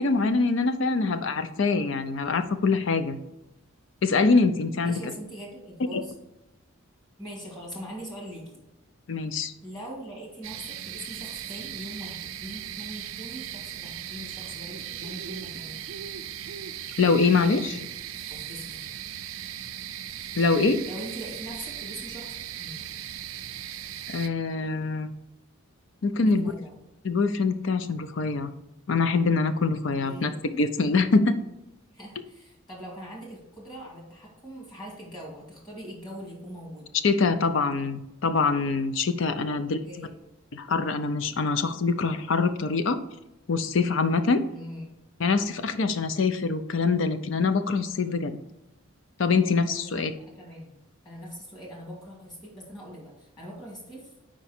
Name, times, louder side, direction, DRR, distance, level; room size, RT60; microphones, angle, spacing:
voice 1, 0.0-3.2 4.0-5.0 5.9-6.0 9.1-9.5 17.0-17.9 20.4-20.8 24.1-25.1 26.0-26.5 27.0-28.5 28.9-31.4 37.0-40.1 40.5-43.0 43.5-44.4 45.2-48.4 49.2-50.1, left 4 dB, 60° left, 11 dB, 0.5 m, -24 dB
voice 2, 4.8-6.1 7.2-8.6 9.6-15.7 18.3-18.8 20.3-20.4 20.9-22.3 22.6-22.8 26.2-26.7 30.0-30.4 31.9-36.9 39.8-40.2 44.5-44.8 49.8-50.7 51.0-54.1, equal, 20° left, -3 dB, 2.2 m, -41 dB
Owl in Flat Rock with cricketts, 10.4-24.3, right 10 dB, 75° right, 0.4 m, -38 dB
4.9 x 4.6 x 4.2 m, 0.93 s
head